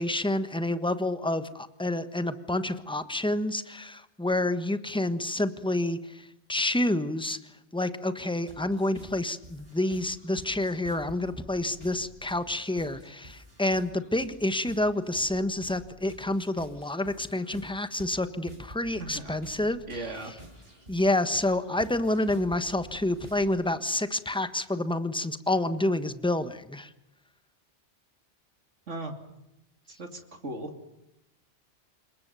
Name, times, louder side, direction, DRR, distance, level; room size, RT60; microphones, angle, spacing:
voice 1, 0.0-7.4 7.7-19.8 20.9-26.9, left 1 dB, 5° left, 11 dB, 1.3 m, -28 dB
sound 1, 8.5-23.7, right 1 dB, 55° right, 7.5 m, -50 dB
voice 2, 19.0-19.4 19.9-20.3 28.9-29.1 29.9-30.7, right 2 dB, 90° right, 5 dB, 3.1 m, -37 dB
27.5 x 22.5 x 7.0 m, 0.89 s
omnidirectional pair, 1.2 m